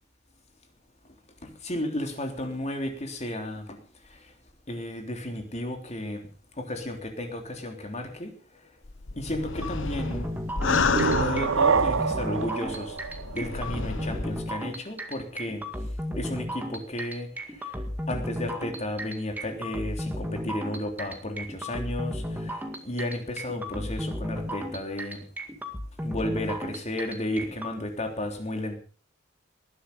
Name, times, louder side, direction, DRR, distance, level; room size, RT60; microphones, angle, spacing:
voice 1, 1.4-3.8 4.7-6.3 6.6-8.3 9.2-10.3 10.9-13.0 13.3-15.6 16.1-17.3 17.6-17.7 18.1-25.2 26.0-28.7, left 1 dB, 35° left, 5 dB, 3.3 m, -33 dB
sound 1, 8.8-12.0 12.7-14.4, left 4 dB, 65° left, 1.1 m, -30 dB
sound 2, 9.6-27.7, equal, 10° right, 2.0 m, -34 dB
sound 3, 10.6-14.2, right 5 dB, 75° right, 0.7 m, -27 dB
20.0 x 11.5 x 5.4 m, 0.40 s
head